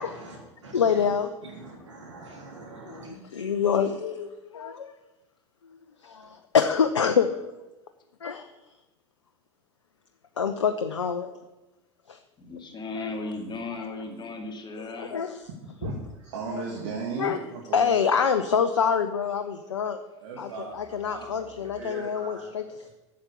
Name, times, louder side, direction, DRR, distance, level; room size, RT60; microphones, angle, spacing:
voice 1, 0.0-3.2, right 2 dB, 90° right, -2 dB, 3.3 m, -44 dB
voice 2, 0.7-1.3 2.9-4.9 6.0-7.3 8.2-8.5 10.4-11.3 12.1-12.2 13.0-13.1 15.0-15.4 16.5-16.6 17.2-17.4 17.7-20.0 20.4-22.9, left 6 dB, 90° left, 9 dB, 0.6 m, -26 dB
voice 3, 12.4-15.2 21.6-22.1, left 3 dB, 30° left, 3 dB, 2.5 m, -36 dB
voice 4, 15.8-18.0 20.2-22.9, right 4 dB, 70° right, -1 dB, 2.1 m, -37 dB
8.7 x 7.3 x 8.1 m, 1.0 s
hypercardioid pair, 80°, 15 cm